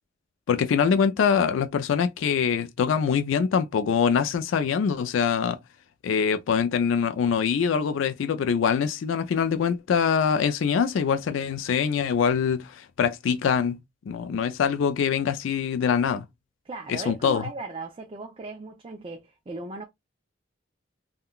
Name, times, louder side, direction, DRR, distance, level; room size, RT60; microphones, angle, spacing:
voice 1, 0.5-5.6 6.0-13.8 14.1-16.2 16.9-17.4, left 6 dB, 80° left, 0.4 m, -24 dB
voice 2, 16.7-19.8, right 3 dB, 30° right, 0.4 m, -37 dB
3.6 x 2.2 x 2.2 m
head